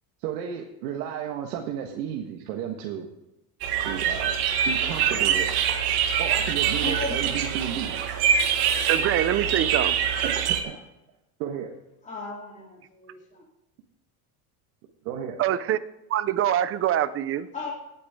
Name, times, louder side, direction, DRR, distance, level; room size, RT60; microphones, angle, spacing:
voice 1, 0.2-3.1 3.8-4.3 4.6-5.5 6.2-7.9 10.2-10.8 11.4-11.7 15.0-15.4, right 9 dB, 75° right, 1.6 m, -32 dB
sound 1, 3.6-10.6, right 8 dB, 50° right, 1.8 m, -24 dB
voice 2, 6.8-7.2 10.7-10.9 12.0-13.4 17.5-17.7, left 3 dB, 15° left, 3.2 m, -35 dB
voice 3, 8.9-10.0 15.4-15.8 16.1-17.5, right 11 dB, 30° right, 0.5 m, -24 dB
18.0 x 8.6 x 3.7 m
supercardioid pair, 130°, 47 cm